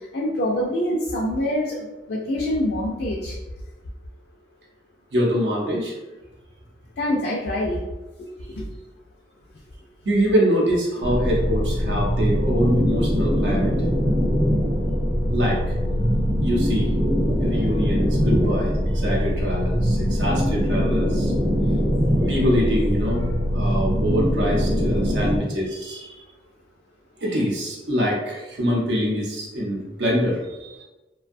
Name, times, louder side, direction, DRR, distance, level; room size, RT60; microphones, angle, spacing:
voice 1, 0.1-3.4 7.0-7.8 8.5-8.6 18.3-18.4, left 1 dB, 70° left, -3 dB, 0.4 m, -25 dB
voice 2, 5.1-6.0 10.0-13.8 15.3-15.6 16.4-16.9 17.4-21.3 22.3-26.2 27.2-30.8, equal, 80° right, -3 dB, 0.7 m, -24 dB
sound 1, 11.0-25.4, equal, 15° right, 0.4 m, -22 dB
2.5 x 2.2 x 2.5 m, 1.1 s
head